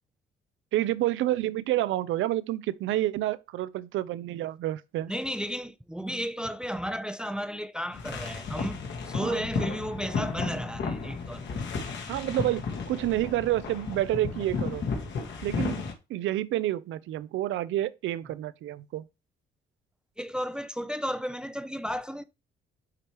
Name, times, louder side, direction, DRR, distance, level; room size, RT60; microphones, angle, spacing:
voice 1, 0.7-5.1 9.2-9.8 12.1-14.9 15.4-15.8 16.1-19.1, right 14 dB, 80° right, 0.5 m, -29 dB
voice 2, 5.1-8.8 9.1-11.5 20.2-22.2, equal, 5° right, 0.5 m, -33 dB
sound 1, 7.9-15.9, left 5 dB, 65° left, 1.8 m, -33 dB
9.7 x 3.4 x 3.0 m
cardioid pair, 90°, 20 cm